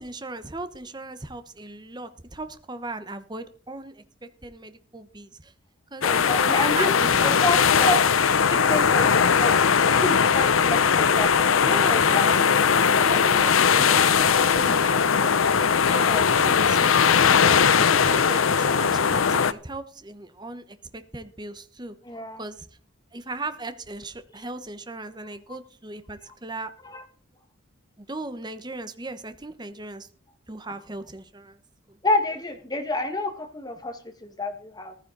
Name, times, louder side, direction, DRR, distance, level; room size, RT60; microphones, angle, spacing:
voice 1, 0.0-5.5 5.9-6.1 6.6-7.9 11.6-12.5 13.0-14.3 14.5-15.5 15.9-22.0 22.4-22.7 23.1-26.7 28.0-30.1 30.5-31.6 31.9-32.0, right 2 dB, 20° right, 10 dB, 1.1 m, -38 dB
sound 1, 6.0-19.5, left 6 dB, 85° left, 0.7 m, -19 dB
voice 2, 6.0-6.9 7.2-12.3 15.9-16.3 22.0-22.4 26.8-27.0 32.0-35.0, left 2 dB, 20° left, 5 dB, 1.7 m, -29 dB
15.0 x 13.5 x 4.0 m, 0.42 s
head